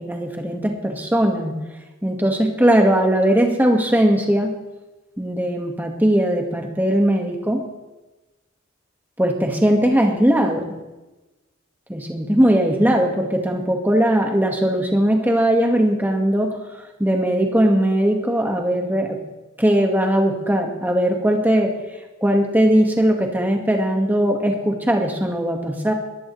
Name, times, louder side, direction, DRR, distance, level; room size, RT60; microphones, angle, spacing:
voice 1, 0.0-1.5 2.0-4.5 5.2-7.6 9.2-10.7 11.9-16.6 17.0-19.2 19.6-21.7 22.2-25.9, right 1 dB, 10° right, 2 dB, 1.7 m, -19 dB
21.0 x 15.0 x 3.3 m, 1.1 s
head